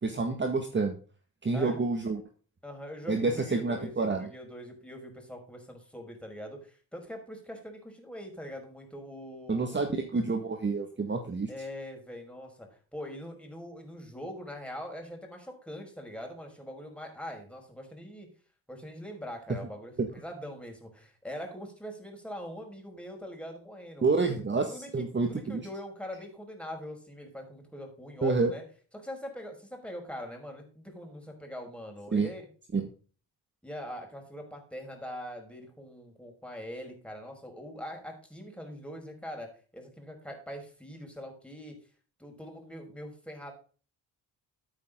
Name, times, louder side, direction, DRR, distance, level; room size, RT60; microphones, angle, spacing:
voice 1, 0.0-1.0 1.4-2.2 3.1-4.3 9.5-11.5 20.0-20.1 24.0-24.7 24.9-25.6 28.2-28.5 32.1-32.3 32.7-32.9, right 3 dB, 30° right, 5 dB, 1.8 m, -28 dB
voice 2, 2.6-9.8 11.5-18.3 18.7-24.4 24.7-28.6 28.9-32.5 33.6-41.8 42.2-43.5, equal, 5° left, 2 dB, 5.4 m, -43 dB
13.0 x 8.9 x 3.8 m, 0.39 s
cardioid pair, 85°, 37 cm